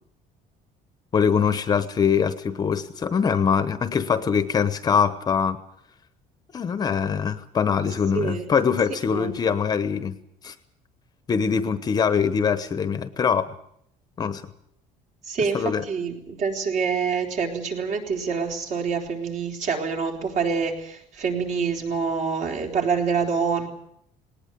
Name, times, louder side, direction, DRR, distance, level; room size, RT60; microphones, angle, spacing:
voice 1, 1.1-5.6 6.5-10.1 10.4-10.5 11.3-13.5 14.2-14.4 15.5-15.8, left 6 dB, 25° left, 12 dB, 1.0 m, -23 dB
voice 2, 8.1-8.5 9.1-9.3 15.2-23.7, right 5 dB, 50° right, 3 dB, 4.0 m, -26 dB
19.0 x 19.0 x 9.5 m, 0.72 s
cardioid pair, 170°, 15 cm